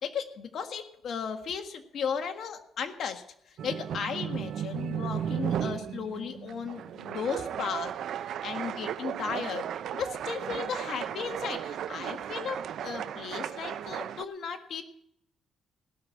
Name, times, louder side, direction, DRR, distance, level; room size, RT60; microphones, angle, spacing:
voice 1, 0.0-3.2 3.6-7.9 8.4-14.8, left 6 dB, 65° left, 6 dB, 1.7 m, -35 dB
sound 1, 3.6-14.2, right 9 dB, 70° right, 0.6 m, -35 dB
17.0 x 6.2 x 9.5 m, 0.74 s
cardioid pair, 90°, 0 cm